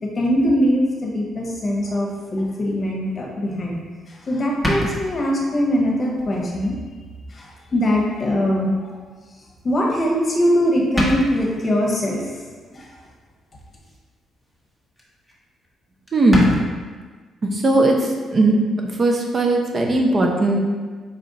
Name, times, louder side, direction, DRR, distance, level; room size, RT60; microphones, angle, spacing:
voice 1, 0.0-3.8 4.1-6.8 7.3-9.0 9.6-12.4 12.7-12.9, equal, 40° left, -2 dB, 0.9 m, -22 dB
sound 1, 3.8-3.9 4.6-5.5 6.2-6.4 6.9-7.0 8.3-8.4 10.0-10.4 10.7-10.8 10.9-11.6 13.5-14.0 14.4-14.6 15.0-15.1 15.3-15.4 15.6-15.7 16.1-16.6, equal, 5° right, 1.0 m, -26 dB
voice 2, 16.1-16.5 17.4-18.6 19.0-20.6, right 2 dB, 40° right, 1 dB, 0.7 m, -18 dB
4.3 x 2.4 x 4.0 m, 1.4 s
cardioid pair, 90°, 0 cm